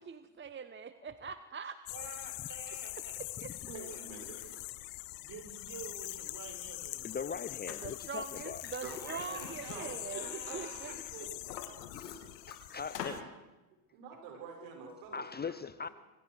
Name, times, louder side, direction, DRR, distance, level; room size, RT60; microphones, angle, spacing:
voice 1, 0.0-1.8 3.4-3.5 4.4-4.5 7.8-10.9, right 5 dB, 25° right, 1.1 m, -43 dB
voice 2, 1.6-3.1 3.9-4.1 5.2-7.2 9.3-11.0, right 5 dB, 45° right, 5.9 m, -50 dB
sound 1, 1.9-13.2, left 25 dB, 65° left, 0.7 m, -44 dB
voice 3, 3.7-4.6 8.8-11.5 13.9-15.5, right 5 dB, 70° right, 6.6 m, -47 dB
voice 4, 7.0-9.3 10.6-10.7 12.0-13.3 15.1-15.9, left 6 dB, 20° left, 0.7 m, -41 dB
Liquid, 7.7-7.8 8.3-10.7 11.1-12.6 12.9-13.2, left 7 dB, 90° left, 2.9 m, -45 dB
25.5 x 23.0 x 4.9 m
hypercardioid pair, 75°, 47 cm